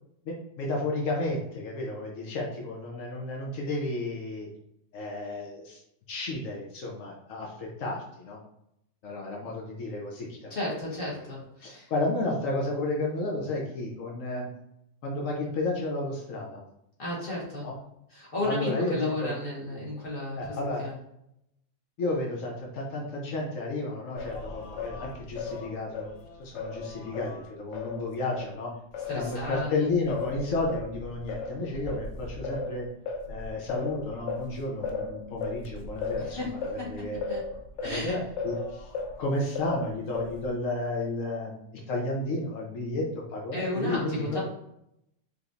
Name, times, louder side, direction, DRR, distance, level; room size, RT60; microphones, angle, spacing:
voice 1, 0.2-4.5 4.9-5.8 6.1-8.4 9.0-10.5 11.0-11.1 11.6-14.5 15.0-16.6 17.6-17.8 18.4-19.3 20.4-20.8 22.0-26.1 26.4-28.7 29.1-32.9 33.3-37.2 37.8-38.9 39.2-43.0 43.3-44.4, left 2 dB, 90° left, -1 dB, 1.2 m, -32 dB
voice 2, 10.5-11.9 17.0-17.7 18.1-20.9 29.1-29.7 36.2-37.4 37.8-38.1 43.5-44.4, left 1 dB, 45° left, -5 dB, 1.8 m, -33 dB
Singing, 24.2-28.5 28.9-39.2 39.6-40.6, left 4 dB, 70° left, 0.9 m, -36 dB
5.0 x 3.2 x 2.5 m, 0.78 s
omnidirectional pair, 1.3 m